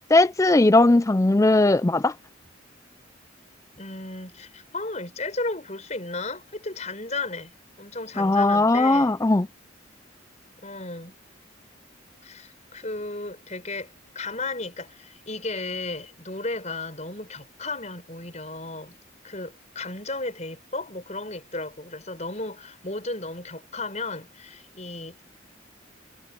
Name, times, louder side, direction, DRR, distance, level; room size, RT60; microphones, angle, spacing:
voice 1, 0.1-2.1 8.2-9.5, left 2 dB, 15° left, 0.4 m, -18 dB
voice 2, 3.8-9.2 10.6-11.1 12.2-18.9 19.2-25.2, left 2 dB, 35° left, 6.0 m, -34 dB
head